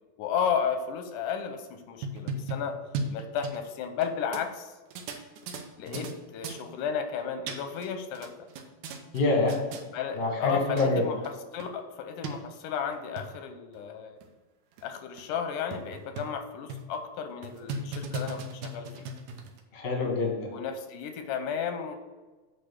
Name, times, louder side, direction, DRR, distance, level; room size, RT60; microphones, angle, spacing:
voice 1, 0.2-2.8 3.1-4.7 5.8-8.3 9.9-14.2 14.8-19.1 20.5-22.0, left 7 dB, 90° left, 7 dB, 2.3 m, -33 dB
sound 1, 1.8-4.1 4.3-4.4 4.9-6.1 6.4-6.6 7.2-7.9 8.1-9.2 9.5-9.8 10.5-10.6 10.8-10.9 11.2-11.3 11.6-11.7 12.2-12.3 12.9-13.3 13.8-13.9 14.2-14.3 14.8-14.9 15.2-15.3 15.7-16.4 16.7-17.0 17.4-19.6, right 3 dB, 85° right, 2.3 m, -36 dB
voice 2, 9.1-9.6 10.1-11.0 19.7-20.5, left 2 dB, 35° left, -1 dB, 1.0 m, -26 dB
8.3 x 3.6 x 6.0 m, 1.3 s
omnidirectional pair, 3.7 m